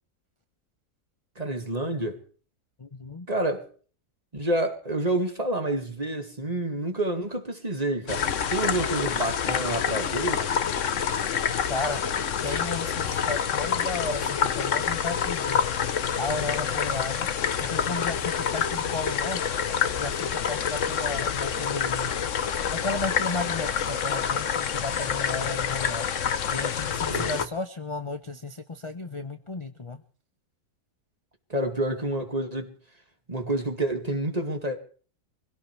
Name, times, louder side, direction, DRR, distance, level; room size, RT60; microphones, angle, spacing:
voice 1, 1.4-2.2 3.3-3.7 4.3-10.5 27.1-27.5 31.5-32.7 33.3-34.8, right 1 dB, 25° right, 2.3 m, -28 dB
voice 2, 2.8-3.3 11.7-12.0 12.4-15.6 16.2-17.3 17.6-19.6 20.0-22.1 22.7-26.1 26.5-30.0, left 3 dB, 25° left, 0.7 m, -34 dB
sound 1, 8.1-27.5, left 7 dB, 60° left, 1.2 m, -27 dB
25.0 x 17.0 x 3.4 m
omnidirectional pair, 1.6 m